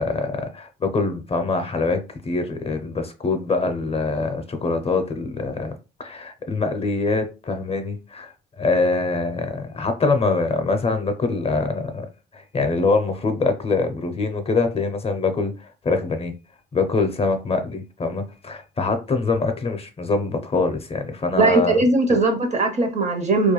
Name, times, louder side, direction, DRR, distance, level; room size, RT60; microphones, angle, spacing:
voice 1, 0.0-12.1 12.3-16.3 16.7-21.8 22.1-22.2, left 3 dB, 30° left, 0.5 m, -24 dB
voice 2, 21.4-23.5, right 2 dB, 35° right, 0.6 m, -19 dB
2.3 x 2.1 x 3.0 m
cardioid pair, 90°, 20 cm